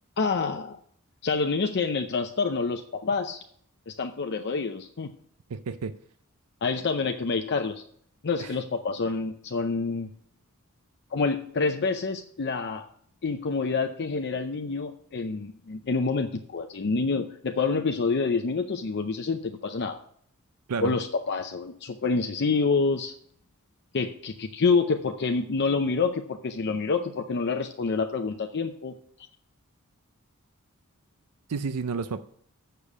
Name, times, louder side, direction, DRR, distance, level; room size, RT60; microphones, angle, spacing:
voice 1, 0.2-0.8 1.2-3.4 3.9-5.1 6.6-7.8 8.2-10.1 11.1-12.9 13.2-20.0 20.8-23.1 23.9-29.0, left 4 dB, 50° left, 6 dB, 0.6 m, -27 dB
voice 2, 5.5-6.0 8.4-8.5 20.7-20.9 31.5-32.2, right 5 dB, 90° right, 12 dB, 0.5 m, -31 dB
6.8 x 6.8 x 7.3 m, 0.63 s
head